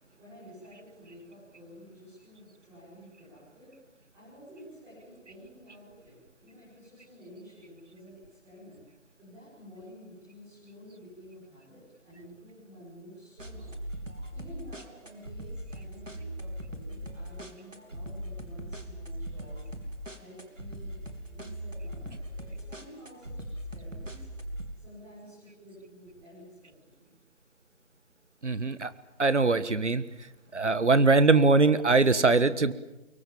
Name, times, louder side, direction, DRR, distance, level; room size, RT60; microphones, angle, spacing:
voice 1, 0.2-3.7 4.1-8.8 9.2-13.9 14.3-19.7 20.2-24.3 24.7-27.2, equal, 5° right, -10 dB, 5.9 m, -51 dB
sound 1, 13.4-24.7, equal, 85° right, 3.2 m, -40 dB
voice 2, 28.4-28.9 29.2-30.0 30.5-32.7, right 3 dB, 70° right, 15 dB, 1.5 m, -22 dB
24.5 x 23.0 x 7.3 m, 1.0 s
figure-of-eight pair, 160°, 37 cm